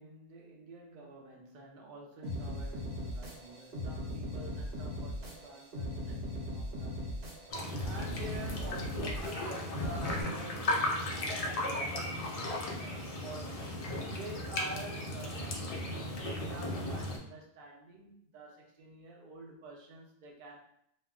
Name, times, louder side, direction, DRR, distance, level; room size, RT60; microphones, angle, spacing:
voice 1, 0.0-7.2 7.5-15.8 16.2-20.6, right 2 dB, 55° right, -1 dB, 0.6 m, -49 dB
sound 1, 2.2-10.2, left 1 dB, 75° right, 1.0 m, -39 dB
sound 2, 7.5-17.2, left 1 dB, 50° left, 0.5 m, -36 dB
2.3 x 2.0 x 3.5 m, 0.73 s
omnidirectional pair, 1.0 m